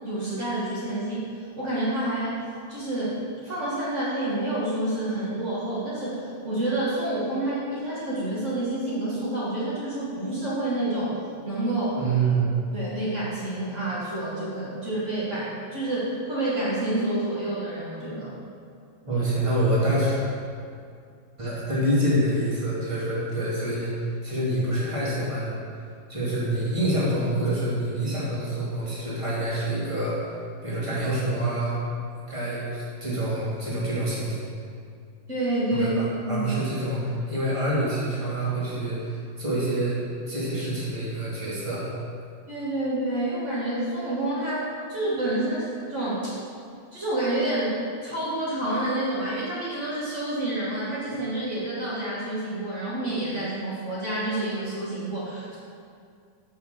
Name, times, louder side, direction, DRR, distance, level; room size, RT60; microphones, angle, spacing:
voice 1, 0.0-1.2 1.6-2.4 2.7-11.2 11.4-12.0 12.7-18.3 35.3-35.9 36.2-36.5 42.5-44.6 44.9-46.4 46.9-55.6, right 1 dB, 90° right, -9 dB, 0.6 m, -28 dB
voice 2, 12.0-12.5 19.0-20.2 21.4-25.6 26.1-30.2 30.6-31.8 32.3-34.4 35.7-40.0 40.3-41.8, right 1 dB, 15° right, -8 dB, 1.3 m, -26 dB
7.0 x 5.8 x 6.6 m, 2.3 s
omnidirectional pair, 4.2 m